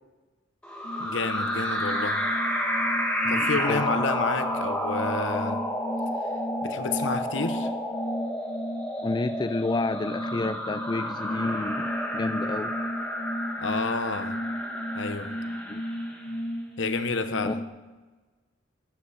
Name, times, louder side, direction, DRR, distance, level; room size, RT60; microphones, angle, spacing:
sound 1, 0.6-16.3, equal, 5° left, 1.6 m, -31 dB
sound 2, 0.8-17.7, equal, 40° left, 1.1 m, -35 dB
voice 1, 1.0-2.2 3.3-5.6 6.6-7.7 13.6-14.4 15.0-15.3 16.8-17.6, left 4 dB, 70° left, 9 dB, 0.9 m, -30 dB
voice 2, 3.2-4.0 9.0-12.7 15.7-15.8 17.4-17.5, left 3 dB, 20° left, 10 dB, 0.3 m, -30 dB
13.5 x 9.7 x 4.2 m, 1.3 s
head